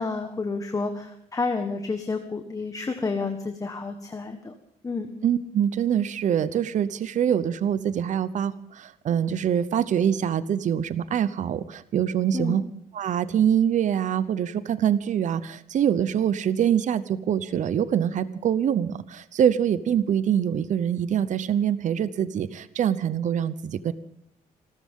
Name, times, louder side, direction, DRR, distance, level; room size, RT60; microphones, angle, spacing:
voice 1, 0.0-4.5 4.8-5.1 12.3-12.6, left 4 dB, 20° left, 6 dB, 1.4 m, -30 dB
voice 2, 5.2-12.6 12.9-23.9, right 9 dB, 55° right, 15 dB, 0.8 m, -24 dB
26.5 x 14.0 x 3.7 m, 0.74 s
cardioid pair, 110°, 15 cm